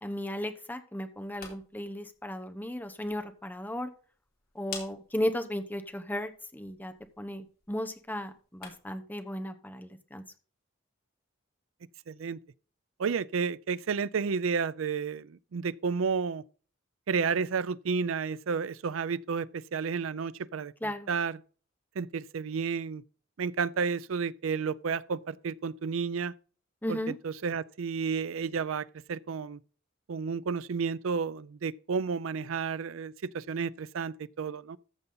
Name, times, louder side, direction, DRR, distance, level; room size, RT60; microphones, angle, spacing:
voice 1, 0.0-3.9 4.5-10.2 20.8-21.1 26.8-27.2, left 1 dB, 10° left, 1.0 m, -35 dB
sound 1, 1.1-9.1, left 6 dB, 50° left, 3.4 m, -51 dB
voice 2, 12.1-12.4 13.0-16.4 17.1-21.4 22.0-23.0 23.4-26.3 26.9-27.0 27.2-29.6 30.1-34.8, right 5 dB, 80° right, 0.5 m, -31 dB
14.0 x 6.9 x 3.9 m
head